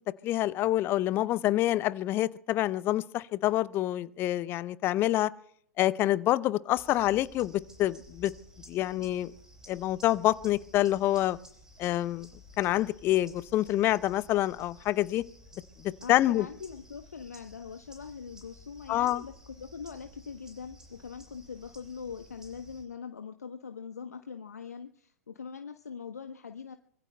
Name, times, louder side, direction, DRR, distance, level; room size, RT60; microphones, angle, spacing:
voice 1, 0.2-5.3 5.8-8.3 8.7-9.3 9.7-11.4 11.8-12.3 12.6-15.2 15.8-16.5 18.9-19.2, left 14 dB, 25° left, 19 dB, 0.5 m, -27 dB
sound 1, 6.7-22.8, equal, 5° right, 4.1 m, -54 dB
voice 2, 16.0-26.8, left 6 dB, 75° left, 7 dB, 1.0 m, -42 dB
24.5 x 22.0 x 2.3 m, 0.68 s
figure-of-eight pair, 110°, 9 cm